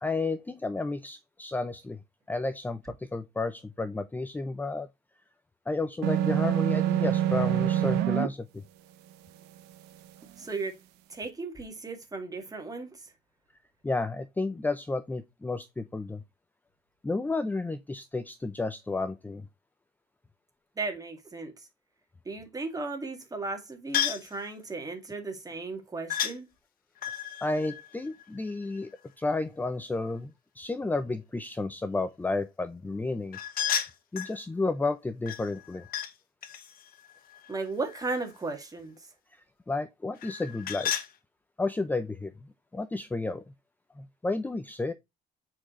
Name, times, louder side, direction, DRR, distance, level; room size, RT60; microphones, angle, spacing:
voice 1, 0.0-2.0 2.3-4.9 5.7-8.6 13.8-16.2 17.0-19.5 27.1-27.2 27.4-28.9 29.2-33.7 34.1-35.9 39.3-40.9 41.6-43.5 44.0-44.9, left 3 dB, 10° left, 0.5 m, -32 dB
sound 1, 6.0-8.3, right 12 dB, 90° right, 0.8 m, -25 dB
voice 2, 10.4-10.8 11.1-13.1 20.8-21.7 22.3-26.5 37.5-39.0, right 3 dB, 20° right, 2.0 m, -35 dB
sound 2, 23.9-24.3 26.1-26.4 27.0-28.8 33.3-34.4 35.3-36.1 36.4-38.3 40.2-41.1, left 9 dB, 60° left, 1.0 m, -33 dB
7.3 x 4.6 x 3.1 m
cardioid pair, 110°, 17 cm